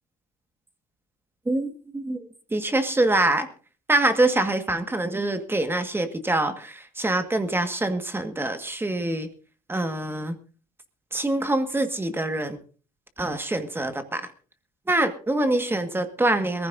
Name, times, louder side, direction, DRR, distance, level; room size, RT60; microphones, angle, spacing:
voice 1, 1.4-2.2 2.5-3.5 3.9-9.3 9.7-10.3 11.1-12.6 13.2-14.3 14.9-16.7, right 2 dB, 15° right, 8 dB, 1.7 m, -25 dB
21.5 x 15.0 x 2.6 m, 0.38 s
supercardioid pair, 90°, 16 cm